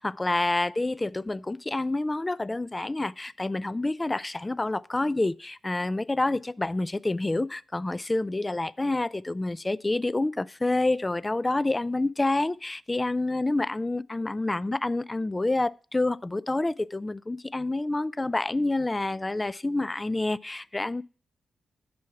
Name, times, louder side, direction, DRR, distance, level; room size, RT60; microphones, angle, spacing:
voice 1, 0.0-21.0, left 2 dB, 25° left, 0.3 m, -28 dB
7.5 x 5.8 x 4.5 m
supercardioid pair, 45°, 0 cm